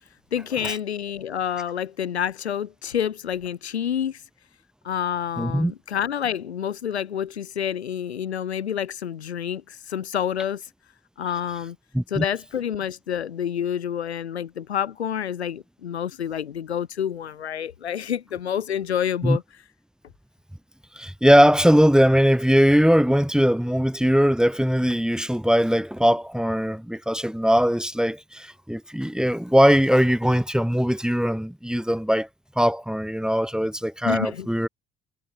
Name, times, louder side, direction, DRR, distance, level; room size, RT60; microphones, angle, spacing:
voice 1, 0.3-4.2 4.8-10.6 11.2-11.8 12.1-19.4 34.0-34.5, left 9 dB, 85° left, 4.4 m, -28 dB
voice 2, 5.4-5.7 11.9-12.2 19.2-19.4 21.0-32.3 32.6-34.7, equal, ahead, 4.7 m, -20 dB
hypercardioid pair, 50°, 32 cm